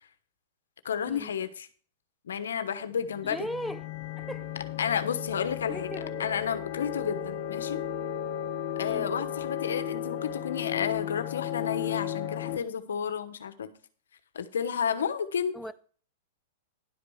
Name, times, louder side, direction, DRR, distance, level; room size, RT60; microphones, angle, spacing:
voice 1, 0.8-1.7 2.2-3.5 4.8-5.9 6.2-7.8 8.8-13.7 14.3-15.5, left 7 dB, 85° left, 1.1 m, -31 dB
sound 1, 3.0-12.6, left 10 dB, 50° left, 1.4 m, -35 dB
voice 2, 3.2-3.9 4.2-4.5 5.7-6.1 8.8-9.1 15.5-15.7, equal, ahead, 0.6 m, -37 dB
11.0 x 5.1 x 6.4 m
hypercardioid pair, 120°, 0 cm